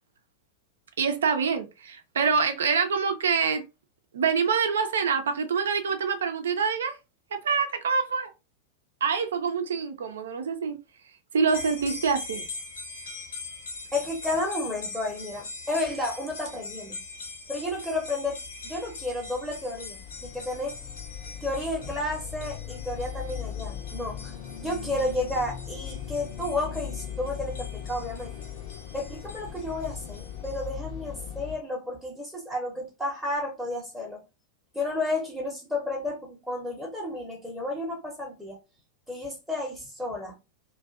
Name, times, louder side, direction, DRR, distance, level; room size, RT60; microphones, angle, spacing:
voice 1, 1.0-3.6 4.1-6.9 7.3-8.3 9.0-10.8 11.3-12.4, right 6 dB, 65° right, 0.4 m, -26 dB
sound 1, 11.5-30.7, left 3 dB, 65° left, 0.8 m, -42 dB
voice 2, 13.9-17.0 17.5-20.8 21.4-28.3 28.9-34.2 34.7-38.6 39.1-40.4, left 2 dB, 5° right, 0.7 m, -32 dB
sound 2, 18.4-31.6, left 9 dB, 40° left, 0.5 m, -39 dB
2.5 x 2.2 x 2.3 m
figure-of-eight pair, 90°, 0 cm